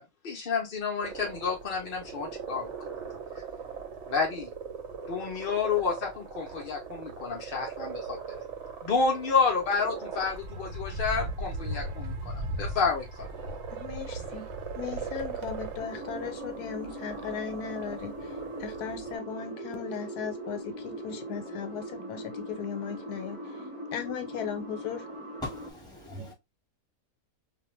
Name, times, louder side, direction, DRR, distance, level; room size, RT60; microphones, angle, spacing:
voice 1, 0.0-2.7 4.1-4.5 5.1-8.4 8.8-13.0, left 5 dB, 60° left, 0.5 m, -30 dB
sound 1, 1.0-19.2, right 7 dB, 55° right, 0.9 m, -41 dB
sound 2, 10.1-15.8, right 1 dB, 85° right, 1.2 m, -37 dB
voice 2, 13.7-14.5 14.8-18.3 18.6-23.4 23.9-25.0, left 7 dB, 85° left, 1.1 m, -37 dB
sound 3, 15.8-25.7, equal, 30° right, 0.7 m, -40 dB
voice 3, 25.4-26.3, left 1 dB, 5° left, 1.0 m, -39 dB
2.5 x 2.3 x 3.0 m
omnidirectional pair, 1.7 m